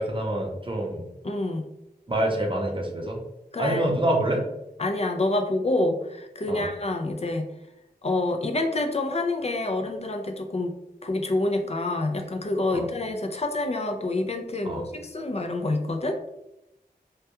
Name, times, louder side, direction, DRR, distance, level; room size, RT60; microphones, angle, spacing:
voice 1, 0.0-1.1 2.1-3.2 3.6-4.4 6.5-6.7 12.7-12.9 14.6-14.8, right 1 dB, 30° right, 0 dB, 0.6 m, -26 dB
voice 2, 1.2-1.6 3.5-3.9 4.8-7.5 8.0-10.7 11.0-16.2, left 2 dB, 40° left, 4 dB, 0.4 m, -27 dB
2.3 x 2.2 x 2.8 m, 0.88 s
wide cardioid pair, 45°, 16 cm